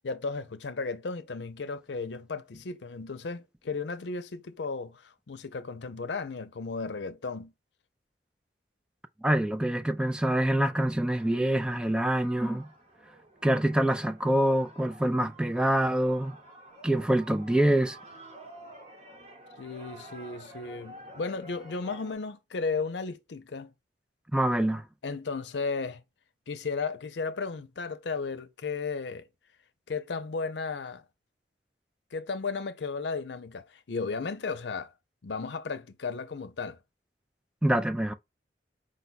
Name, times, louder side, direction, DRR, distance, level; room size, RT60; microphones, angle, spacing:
voice 1, 0.0-7.5 19.6-23.7 25.0-26.0 26.5-29.3 29.9-31.0 32.1-34.9 35.2-36.8, left 4 dB, 80° left, 0.6 m, -34 dB
voice 2, 9.2-12.7 13.4-16.3 16.8-18.0 24.3-24.8 37.6-38.1, right 1 dB, 5° right, 0.3 m, -25 dB
sound 1, 10.8-22.2, right 1 dB, 40° right, 0.9 m, -50 dB
5.1 x 2.2 x 4.0 m
head